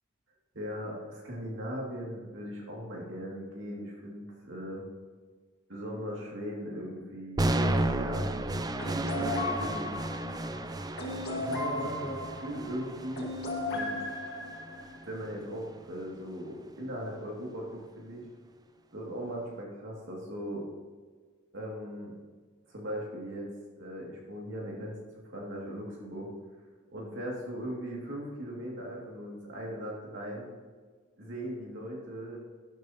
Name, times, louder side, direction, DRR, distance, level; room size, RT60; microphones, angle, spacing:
voice 1, 0.5-4.8 5.7-9.9 11.4-13.3 13.7-14.0 15.0-18.2 18.9-20.7 21.5-22.1 22.7-23.5 23.8-25.0 25.2-26.3 26.9-30.5 31.2-32.4, equal, 65° right, -2 dB, 2.5 m, -39 dB
sound 1, 7.4-15.4, right 1 dB, 20° right, 0.4 m, -33 dB
sound 2, 8.8-15.0, left 2 dB, 55° left, 1.8 m, -36 dB
12.0 x 11.5 x 3.0 m, 1.5 s
head